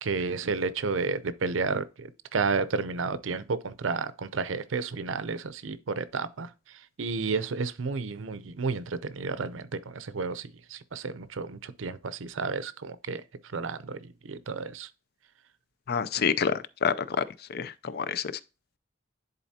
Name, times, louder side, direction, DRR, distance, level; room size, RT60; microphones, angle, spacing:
voice 1, 0.0-13.2 13.5-14.9, right 4 dB, 85° right, 0.6 m, -32 dB
voice 2, 15.9-16.5 16.8-17.2 17.5-18.2, left 6 dB, 55° left, 0.5 m, -27 dB
10.5 x 4.1 x 2.8 m
head